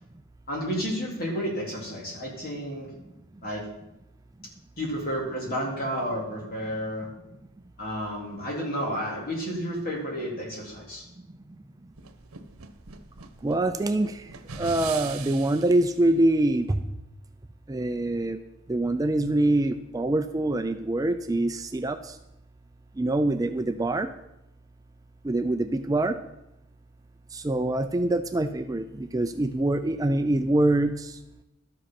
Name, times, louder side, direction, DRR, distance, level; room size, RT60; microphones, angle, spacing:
voice 1, 0.5-2.9 3.4-3.6 4.8-7.1 7.8-11.0, equal, 45° left, -2 dB, 3.8 m, -31 dB
sound 1, 12.0-15.9, right 6 dB, 80° right, 1.1 m, -41 dB
voice 2, 13.4-16.8 17.7-18.4 18.7-22.2 23.0-24.1 25.2-26.2 27.3-31.2, right 2 dB, 15° right, 8 dB, 0.4 m, -25 dB
12.5 x 7.7 x 5.8 m, 0.89 s
head